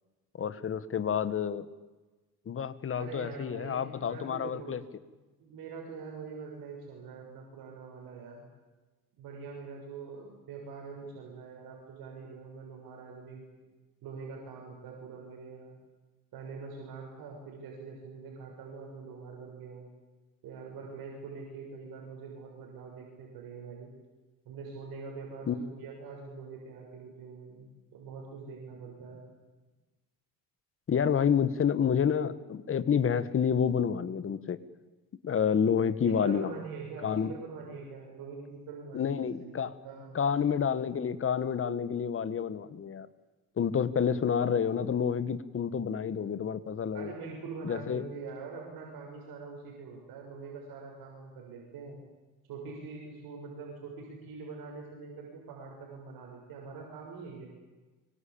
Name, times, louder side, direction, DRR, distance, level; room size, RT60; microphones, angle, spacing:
voice 1, 0.3-1.7 2.4-4.8 25.5-25.6 30.9-34.6 35.2-36.5 37.0-37.3 38.9-39.8 40.1-43.1 43.6-47.1 47.6-48.0, left 7 dB, 35° left, 14 dB, 1.6 m, -29 dB
voice 2, 3.0-4.7 5.4-8.5 9.2-13.6 14.0-15.8 16.3-19.9 20.4-23.9 24.5-29.2 36.1-40.1 46.9-52.0 52.5-57.5, right 4 dB, 75° right, -1 dB, 7.0 m, -44 dB
25.0 x 24.0 x 8.8 m, 1.2 s
cardioid pair, 125°, 36 cm